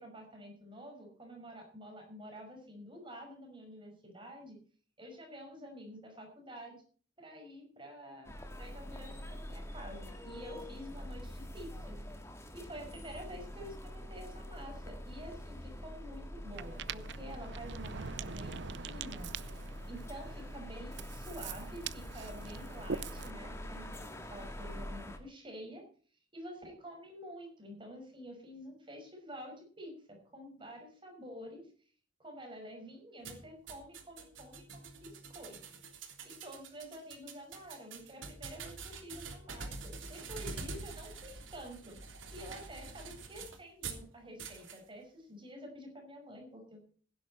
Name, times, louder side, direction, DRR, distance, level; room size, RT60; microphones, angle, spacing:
voice 1, 0.0-4.6 5.0-6.8 7.2-12.2 12.5-19.3 19.9-23.9 24.2-25.8 26.3-31.6 32.2-35.6 36.2-42.0 42.3-46.9, equal, 25° right, 3 dB, 5.6 m, -49 dB
sound 1, 8.2-25.2, equal, 15° left, 2.0 m, -45 dB
Ocean, 16.5-23.3, right 6 dB, 60° right, 0.6 m, -44 dB
sound 2, 33.2-44.0 44.4-44.8, right 4 dB, 80° right, 3.3 m, -46 dB
16.5 x 11.0 x 4.3 m, 0.42 s
head